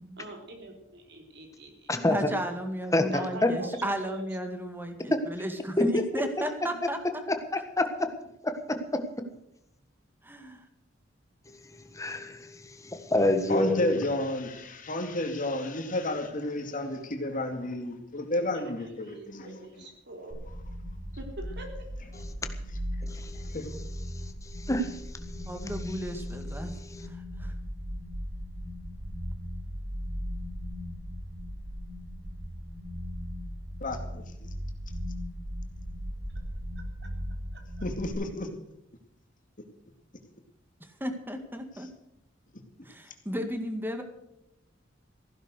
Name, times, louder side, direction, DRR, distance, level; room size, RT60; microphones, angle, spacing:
voice 1, 0.2-1.9 2.3-2.4 3.1-4.3 18.4-20.4 21.2-21.9 36.8-37.1 37.5-37.6, right 1 dB, 65° right, 4 dB, 3.5 m, -45 dB
voice 2, 2.1-7.0 10.2-10.7 25.5-26.7 27.0-27.5 40.8-41.9 42.8-44.0, equal, 10° right, 6 dB, 1.9 m, -34 dB
voice 3, 5.8-6.2 7.3-7.4 8.4-9.0 11.9-12.5 12.8-14.0 23.0-23.4 24.5-25.0, left 1 dB, 15° left, 7 dB, 1.6 m, -26 dB
voice 4, 13.5-19.8 23.4-23.7 33.8-34.5 37.8-38.5, left 1 dB, 45° left, 5 dB, 2.5 m, -32 dB
sound 1, 20.3-38.1, equal, 80° right, 7.5 m, -38 dB
15.5 x 11.0 x 6.6 m, 0.83 s
head